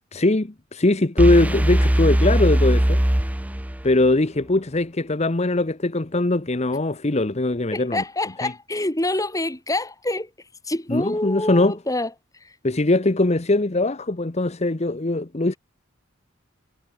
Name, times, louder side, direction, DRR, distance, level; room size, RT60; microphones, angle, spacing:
voice 1, 0.1-3.0 3.8-8.0 8.4-8.5 10.9-11.7 12.6-15.5, left 2 dB, 35° left, 1.0 m, -21 dB
sound 1, 1.2-4.1, equal, 5° right, 0.8 m, -20 dB
voice 2, 7.7-10.3 10.6-12.6, left 1 dB, 15° left, 4.1 m, -27 dB
head